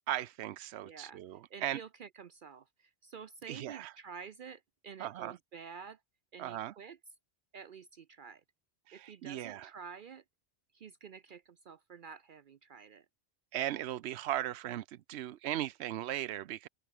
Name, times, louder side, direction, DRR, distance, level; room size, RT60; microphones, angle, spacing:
voice 1, 0.1-1.8 3.5-3.9 5.0-5.4 6.4-6.7 8.9-9.7 13.5-16.7, right 13 dB, 85° right, 0.9 m, -37 dB
voice 2, 0.8-1.2 1.5-6.0 6.3-7.0 7.5-8.4 8.9-10.2 10.7-13.1, right 6 dB, 55° right, 0.7 m, -49 dB
omnidirectional pair, 1.1 m